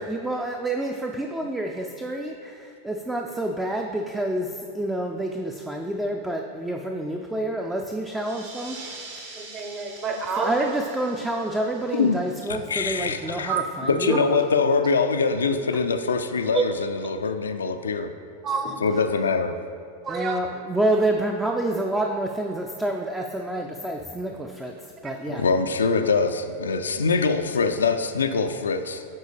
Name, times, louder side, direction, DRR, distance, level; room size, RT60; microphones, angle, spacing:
voice 1, 0.0-8.8 10.4-14.2 20.1-24.7 25.0-25.4, right 1 dB, 5° right, 2 dB, 0.3 m, -28 dB
sound 1, 8.0-13.2, right 3 dB, 55° right, 1.1 m, -44 dB
voice 2, 9.4-10.7 13.5-13.7 16.5-16.6 18.4-18.7 20.0-20.4, right 5 dB, 30° right, 3 dB, 0.7 m, -27 dB
voice 3, 11.9-12.2 12.5-13.6 13.9-18.1 18.8-19.5 25.3-29.0, left 4 dB, 70° left, 8 dB, 0.3 m, -23 dB
9.6 x 3.9 x 3.3 m, 2.3 s
figure-of-eight pair, 90°, 0 cm